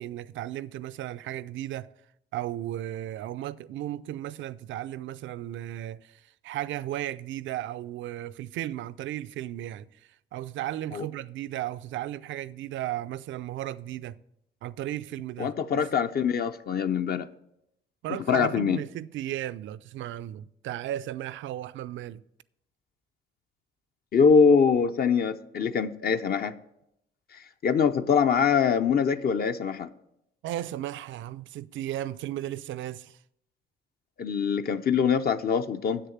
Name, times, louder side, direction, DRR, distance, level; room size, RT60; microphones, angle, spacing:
voice 1, 0.0-1.9 2.3-9.9 10.3-14.2 14.6-15.9 18.0-22.2 30.4-33.2, right 13 dB, 75° right, 0.4 m, -35 dB
voice 2, 15.4-17.3 18.3-18.8 24.1-26.5 27.3-29.9 34.2-36.0, left 6 dB, 50° left, 0.6 m, -23 dB
7.7 x 6.7 x 7.3 m
cardioid pair, 90°, 20 cm